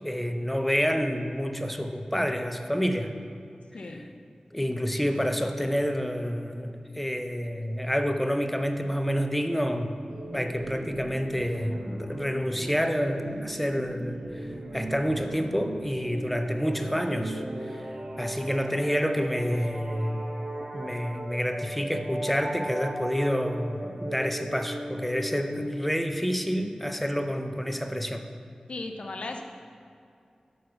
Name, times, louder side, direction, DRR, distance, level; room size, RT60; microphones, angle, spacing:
voice 1, 0.0-3.1 3.8-4.0 4.5-10.0 10.3-14.2 14.7-17.4 17.7-17.8 18.2-20.3 20.7-28.2, equal, 5° left, 6 dB, 0.6 m, -28 dB
sound 1, 10.1-26.2, right 1 dB, 55° right, 0.8 m, -37 dB
voice 2, 28.7-29.4, left 3 dB, 70° left, 4 dB, 0.6 m, -36 dB
6.6 x 5.5 x 4.5 m, 2.4 s
cardioid pair, 40°, 2 cm